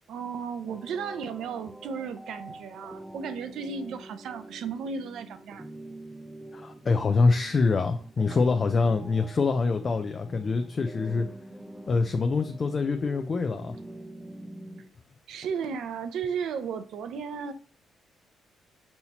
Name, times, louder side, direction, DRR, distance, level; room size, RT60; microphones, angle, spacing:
voice 1, 0.1-5.7 15.3-17.5, right 6 dB, 75° right, 0.5 m, -34 dB
sound 1, 0.7-14.9, right 1 dB, 10° right, 0.5 m, -45 dB
voice 2, 6.5-11.3 11.9-13.7, left 4 dB, 40° left, 0.4 m, -25 dB
5.5 x 2.8 x 2.8 m
cardioid pair, 90°, 0 cm